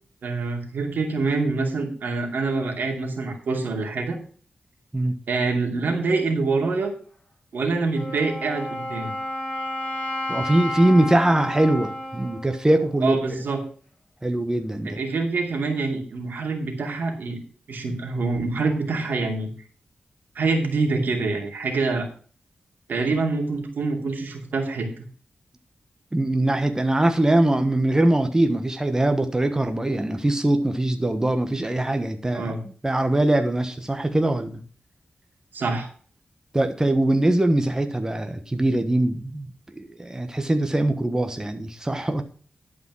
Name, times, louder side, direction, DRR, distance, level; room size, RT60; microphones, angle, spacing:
voice 1, 0.2-4.2 5.3-6.9 7.5-9.1 13.0-13.6 14.8-17.4 17.7-19.5 20.3-22.1 22.9-24.9 32.3-32.6 35.5-35.9, right 3 dB, 85° right, 2.7 m, -25 dB
Wind instrument woodwind instrument, 7.9-13.7, left 1 dB, 40° left, 5.1 m, -32 dB
voice 2, 10.3-13.4 14.2-15.0 26.1-32.5 32.8-34.6 36.5-42.2, right 1 dB, 20° right, 1.3 m, -22 dB
11.5 x 5.2 x 6.2 m
cardioid pair, 70°, 3 cm